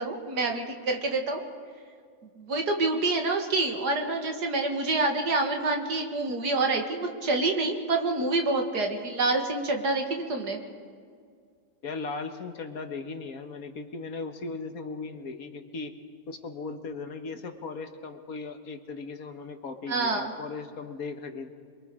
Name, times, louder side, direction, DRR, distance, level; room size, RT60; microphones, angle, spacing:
voice 1, 0.0-1.4 2.4-10.6 19.9-20.3, right 3 dB, 75° right, 3 dB, 2.5 m, -27 dB
voice 2, 11.8-15.9 16.3-21.5, left 4 dB, 60° left, 6 dB, 1.7 m, -37 dB
27.5 x 22.5 x 4.9 m, 2.1 s
omnidirectional pair, 1.8 m